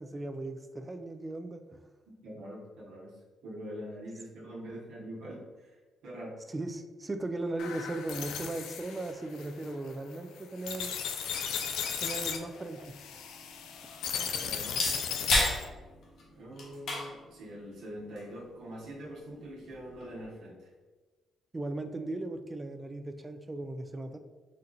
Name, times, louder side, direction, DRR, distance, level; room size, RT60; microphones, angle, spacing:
voice 1, 0.0-1.8 6.5-10.9 12.0-13.0 21.5-24.2, right 2 dB, 20° right, 8 dB, 0.4 m, -37 dB
voice 2, 2.2-3.1 3.4-5.7 6.0-6.4 14.1-14.9 16.3-20.6, equal, 80° right, -5 dB, 1.1 m, -44 dB
sound 1, 7.6-15.7, left 7 dB, 90° left, 0.4 m, -36 dB
sound 2, 12.6-20.3, left 2 dB, 65° left, 1.1 m, -36 dB
4.3 x 2.5 x 4.0 m, 1.3 s
cardioid pair, 90°, 0 cm